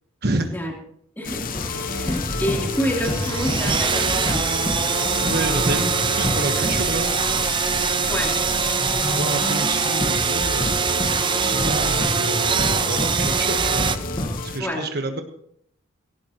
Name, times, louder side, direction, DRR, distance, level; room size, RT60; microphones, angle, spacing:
voice 1, 0.2-0.5 5.2-7.1 9.0-10.8 11.3-13.9 14.4-15.2, right 2 dB, 50° right, 5 dB, 1.2 m, -28 dB
sound 1, 1.2-14.6, left 5 dB, 45° left, 0.8 m, -33 dB
voice 2, 1.2-4.4 7.8-8.3 11.5-11.8 14.6-14.9, equal, 10° left, -2 dB, 3.3 m, -28 dB
sound 2, 1.5-14.5, left 1 dB, 25° left, 1.4 m, -29 dB
sound 3, 1.5-14.0, right 6 dB, 25° right, 0.5 m, -23 dB
18.0 x 17.5 x 3.0 m, 0.67 s
head